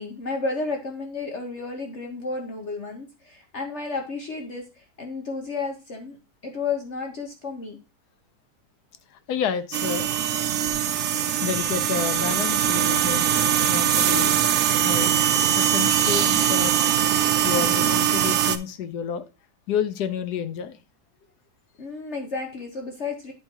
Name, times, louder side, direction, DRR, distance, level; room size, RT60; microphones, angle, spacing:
voice 1, 0.0-4.6 5.0-6.2 6.4-7.8 21.8-23.3, left 4 dB, 50° left, 2 dB, 1.0 m, -32 dB
voice 2, 9.3-10.1 11.4-13.3 13.7-14.3 14.8-15.2 15.6-16.7 17.4-19.2 19.7-20.8, left 7 dB, 75° left, 11 dB, 1.1 m, -29 dB
sound 1, 9.7-18.6, right 10 dB, 65° right, 0.8 m, -22 dB
10.5 x 4.5 x 2.9 m, 0.31 s
omnidirectional pair, 1.8 m